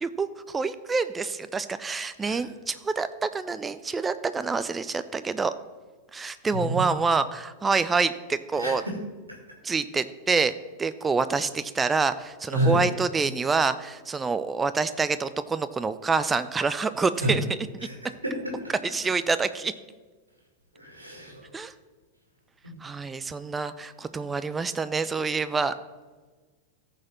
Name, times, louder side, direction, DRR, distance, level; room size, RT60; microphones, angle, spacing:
voice 1, 0.0-5.5 6.1-8.8 9.6-10.5 10.8-17.4 18.8-19.7 21.5-21.7 22.8-25.7, right 4 dB, 15° right, 13 dB, 0.5 m, -27 dB
voice 2, 8.6-8.9 12.5-12.8 17.2-17.4 17.8-17.9 18.2-18.5 20.8-21.5, right 1 dB, 85° right, 0 dB, 2.1 m, -28 dB
14.0 x 4.7 x 5.9 m, 1.4 s
figure-of-eight pair, 90°, 0 cm